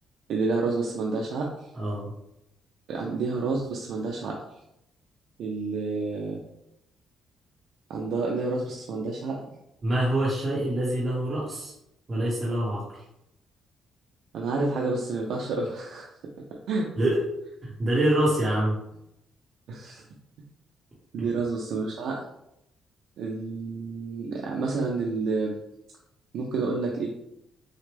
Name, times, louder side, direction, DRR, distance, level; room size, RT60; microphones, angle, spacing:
voice 1, 0.3-1.5 2.9-4.4 5.4-6.4 7.9-9.4 14.3-16.1 16.7-16.9 19.7-20.0 21.1-22.2 23.2-25.5 26.3-27.1, right 3 dB, 70° right, -1 dB, 0.6 m, -29 dB
voice 2, 1.7-2.1 9.8-11.7 12.1-12.8 17.0-17.2 17.6-18.7 21.2-21.3, right 1 dB, 25° right, -7 dB, 1.0 m, -25 dB
6.3 x 2.2 x 3.3 m, 0.83 s
cardioid pair, 155°, 0 cm